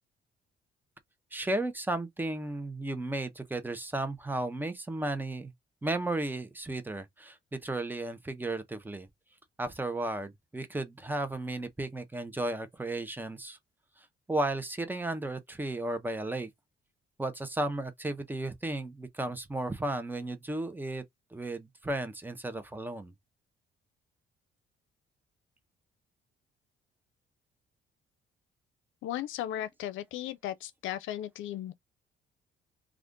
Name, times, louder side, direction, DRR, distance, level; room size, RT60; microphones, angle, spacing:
voice 1, 1.3-5.5 5.8-7.4 7.6-9.1 9.6-13.6 14.0-16.5 17.2-21.0 21.3-23.1, right 2 dB, 10° right, 0.7 m, -34 dB
voice 2, 29.0-31.7, left 12 dB, 85° left, 0.5 m, -36 dB
2.4 x 2.4 x 3.6 m
cardioid pair, 90°, 20 cm